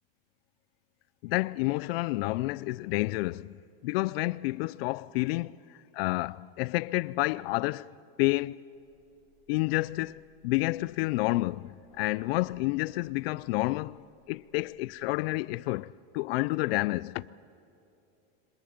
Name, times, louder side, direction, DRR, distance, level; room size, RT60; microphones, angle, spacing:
voice 1, 1.2-5.6 5.9-7.9 8.2-8.6 9.5-17.3, left 21 dB, 75° left, 0.5 m, -30 dB
sound 1, 8.7-15.1, left 4 dB, 20° left, 4.5 m, -64 dB
30.0 x 26.0 x 5.1 m
supercardioid pair, 160°, 30 cm